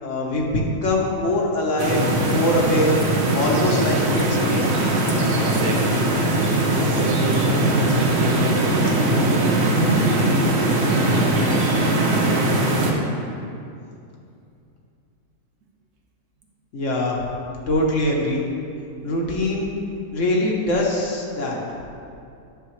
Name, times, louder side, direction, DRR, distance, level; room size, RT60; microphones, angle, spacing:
voice 1, 0.0-3.0 3.3-4.7 16.7-17.2 17.7-18.5 19.0-19.7 20.1-21.6, left 1 dB, 55° left, -1 dB, 1.3 m, -23 dB
sound 1, 1.8-12.9, right 1 dB, 50° right, 1.1 m, -20 dB
voice 2, 5.4-6.1 6.7-11.2, right 1 dB, 75° right, 0 dB, 1.5 m, -31 dB
10.5 x 6.8 x 3.2 m, 2.5 s
omnidirectional pair, 1.6 m